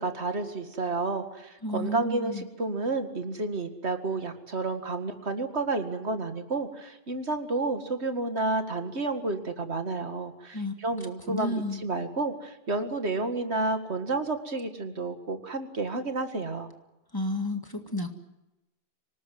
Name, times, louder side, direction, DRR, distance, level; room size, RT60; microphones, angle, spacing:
voice 1, 0.0-16.7, right 3 dB, 85° right, 8 dB, 2.3 m, -31 dB
voice 2, 1.6-2.5 10.5-10.7 11.3-11.8 17.1-18.1, left 1 dB, 20° left, 6 dB, 2.1 m, -31 dB
25.5 x 19.0 x 9.3 m, 0.96 s
omnidirectional pair, 1.1 m